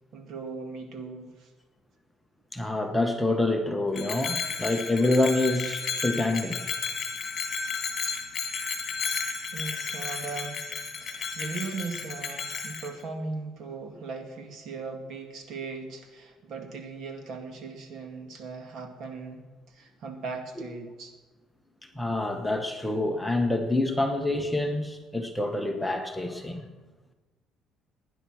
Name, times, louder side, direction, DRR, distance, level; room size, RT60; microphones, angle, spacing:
voice 1, 0.1-1.5 9.5-10.7 11.0-21.1, right 4 dB, 55° right, 2.2 m, -38 dB
voice 2, 2.5-6.6 21.9-26.7, left 2 dB, 5° left, 1.0 m, -27 dB
Bell, 3.9-12.9, left 5 dB, 40° left, 2.3 m, -33 dB
18.5 x 10.0 x 6.2 m
cardioid pair, 145°, 0 cm